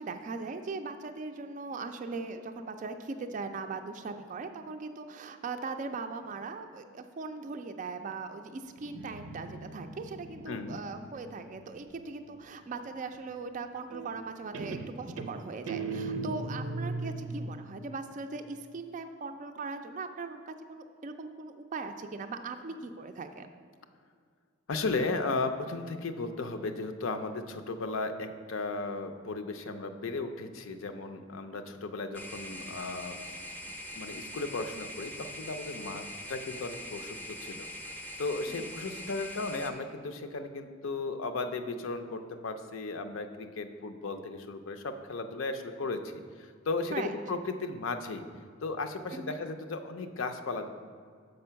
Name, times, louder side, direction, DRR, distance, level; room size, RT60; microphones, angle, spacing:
voice 1, 0.0-23.5 38.5-38.7 46.9-47.1 49.1-49.4, right 4 dB, 40° right, 7 dB, 0.4 m, -39 dB
Guitar, 8.8-12.4 13.9-14.3 14.5-17.5, right 3 dB, 90° right, 0.6 m, -39 dB
voice 2, 10.5-10.8 24.7-33.4 34.0-48.2 48.6-50.7, left 3 dB, 75° left, 8 dB, 0.5 m, -35 dB
sound 1, 32.1-39.7, left 1 dB, 10° left, 0.5 m, -42 dB
6.6 x 5.2 x 5.6 m, 2.1 s
head